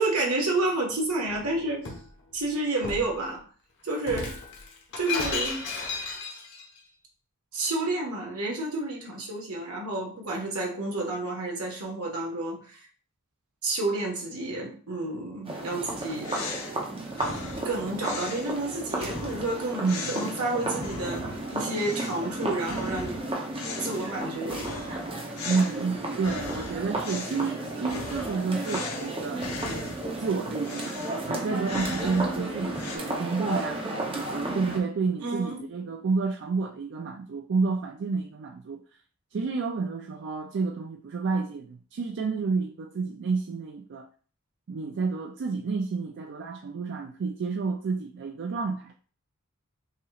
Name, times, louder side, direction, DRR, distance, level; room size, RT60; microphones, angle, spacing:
voice 1, 0.0-1.9 2.3-3.4 3.8-4.4 5.0-5.6 7.5-12.8 13.6-16.5 17.6-23.3 23.8-24.7 35.2-35.6, right 2 dB, 80° right, 1.4 m, -30 dB
Shatter, 1.3-2.1 2.8-3.1 4.0-6.6, left 4 dB, 55° left, 1.1 m, -33 dB
sound 1, 15.4-34.8, right 2 dB, 25° right, 0.8 m, -33 dB
sound 2, 15.8-21.5 21.7-22.3 22.6-30.2 30.6-33.0, left 4 dB, 80° left, 0.9 m, -39 dB
voice 2, 19.8-20.3 25.5-29.6 30.2-38.8 39.3-44.1 44.7-48.9, right 4 dB, 55° right, 0.4 m, -30 dB
5.5 x 3.0 x 2.4 m
head